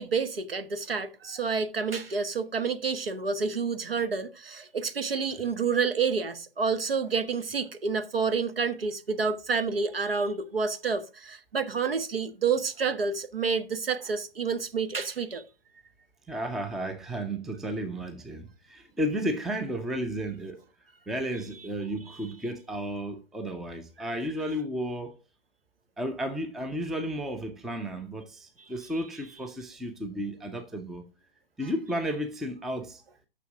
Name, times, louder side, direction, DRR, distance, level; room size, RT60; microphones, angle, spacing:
voice 1, 0.0-15.4, right 5 dB, 70° right, 1.4 m, -29 dB
voice 2, 16.3-20.6 21.1-25.2 26.0-31.0 31.6-33.0, equal, ahead, 0.5 m, -33 dB
6.9 x 6.2 x 5.9 m
figure-of-eight pair, 115°, 30 cm